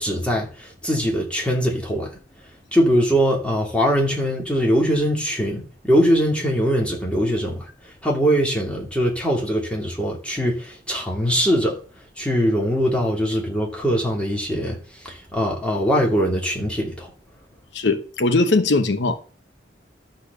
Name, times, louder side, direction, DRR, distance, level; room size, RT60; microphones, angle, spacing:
voice 1, 0.0-2.1 2.7-7.6 7.8-11.8 12.2-14.8 15.0-17.1, equal, 5° left, 2.5 m, -22 dB
voice 2, 17.7-19.2, left 3 dB, 80° left, 1.0 m, -20 dB
12.0 x 4.4 x 6.8 m
head